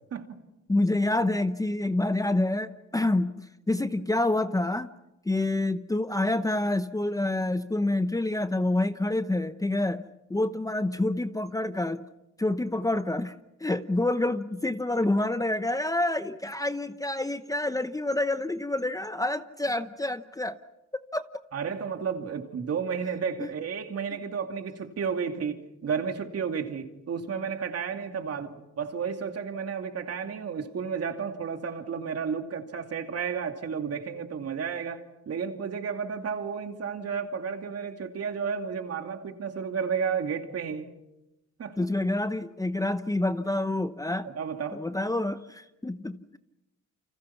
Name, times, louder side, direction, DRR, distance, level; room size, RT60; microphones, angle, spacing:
voice 1, 0.7-4.9 5.3-10.0 10.3-12.0 12.4-13.3 13.6-20.6 21.1-21.3 23.4-23.5 24.1-24.2 41.8-44.3 44.7-46.4, left 2 dB, 10° left, 0.8 m, -27 dB
voice 2, 21.5-40.9 41.6-41.8 44.2-44.8, right 6 dB, 55° right, 2.6 m, -32 dB
29.0 x 26.0 x 5.9 m
cardioid pair, 90°, 30 cm